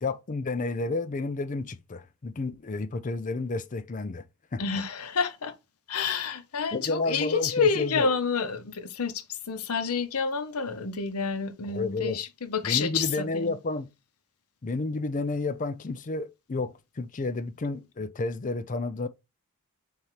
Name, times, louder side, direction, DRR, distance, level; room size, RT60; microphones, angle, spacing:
voice 1, 0.0-4.2 4.5-4.6 6.7-8.1 11.7-12.2 12.6-13.9 14.6-19.1, left 3 dB, 35° left, 0.5 m, -31 dB
voice 2, 4.6-5.5 5.9-13.5, left 5 dB, 75° left, 0.8 m, -29 dB
4.2 x 3.7 x 3.1 m
head